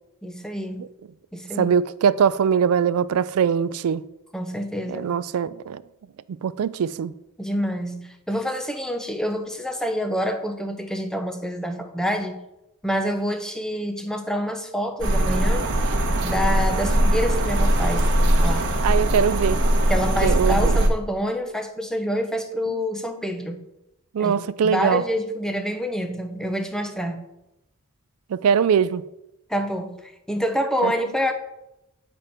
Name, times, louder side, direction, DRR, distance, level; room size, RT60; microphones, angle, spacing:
voice 1, 0.2-0.9 1.3-1.7 4.3-5.1 7.4-12.4 12.8-15.7 16.2-18.1 18.4-18.7 19.9-23.7 24.2-24.4 24.6-27.2 29.5-31.3, equal, 5° left, 0.6 m, -27 dB
voice 2, 1.6-4.0 4.9-5.8 6.4-7.1 18.8-19.6 20.2-20.8 24.1-25.0 28.3-29.0 30.8-30.9, right 7 dB, 70° right, 0.3 m, -21 dB
sound 1, 15.0-20.9, right 1 dB, 55° right, 1.1 m, -20 dB
9.0 x 4.4 x 5.1 m
head